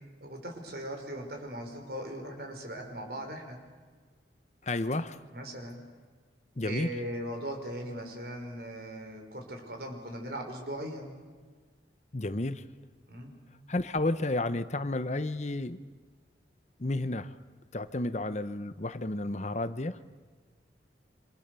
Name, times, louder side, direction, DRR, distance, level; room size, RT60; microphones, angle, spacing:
voice 1, 0.2-3.6 5.3-5.8 6.6-11.2 13.1-13.4, right 1 dB, 55° right, 4 dB, 5.5 m, -39 dB
voice 2, 4.6-5.2 6.6-6.9 12.1-12.6 13.7-15.8 16.8-17.3 17.7-20.0, left 2 dB, 40° left, 12 dB, 0.9 m, -31 dB
28.5 x 26.5 x 6.9 m, 1.5 s
head